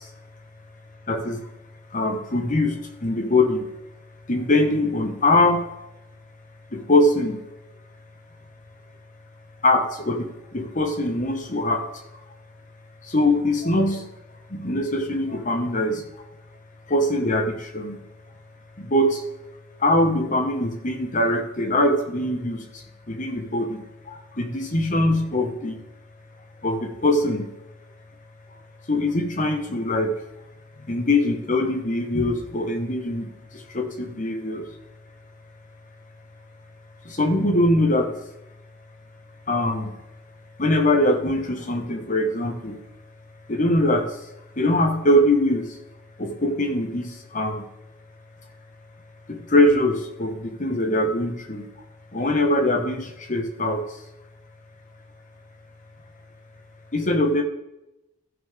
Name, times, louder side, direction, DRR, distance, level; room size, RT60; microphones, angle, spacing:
voice 1, 1.9-2.7 3.0-3.6 4.3-5.6 6.7-7.4 9.6-10.3 10.5-11.8 13.1-14.0 14.5-16.0 16.9-18.0 18.9-19.2 19.8-22.6 23.1-23.7 24.4-25.7 26.6-27.5 28.9-30.1 30.9-33.2 33.7-34.6 37.2-38.1 39.5-39.9 40.6-42.8 43.5-44.0 44.6-45.6 46.2-47.1 47.3-47.6 49.3-50.3 50.6-51.7 52.1-53.0 53.3-53.8 56.9-57.4, left 1 dB, 35° left, 5 dB, 1.2 m, -22 dB
14.0 x 5.6 x 3.7 m, 0.90 s
head